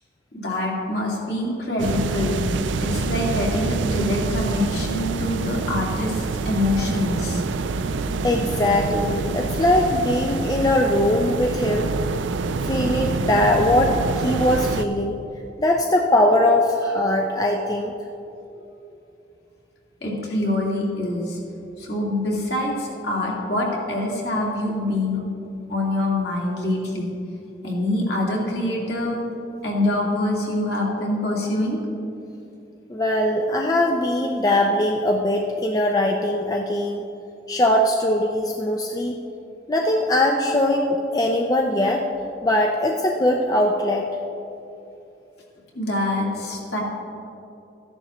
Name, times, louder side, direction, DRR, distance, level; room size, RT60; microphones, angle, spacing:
voice 1, 0.3-2.4 2.8-7.4 20.0-21.4 21.8-25.2 25.7-27.1 27.6-29.2 29.6-31.8 45.7-46.8, left 1 dB, 60° left, -3 dB, 2.2 m, -25 dB
sound 1, 1.8-14.9, right 4 dB, 85° right, 0.4 m, -26 dB
voice 2, 8.2-11.9 12.6-15.2 15.6-17.9 32.9-37.0 37.5-39.2 39.7-42.1 42.4-44.1, left 1 dB, 20° left, 1 dB, 0.4 m, -21 dB
13.5 x 10.5 x 3.0 m, 2.8 s
head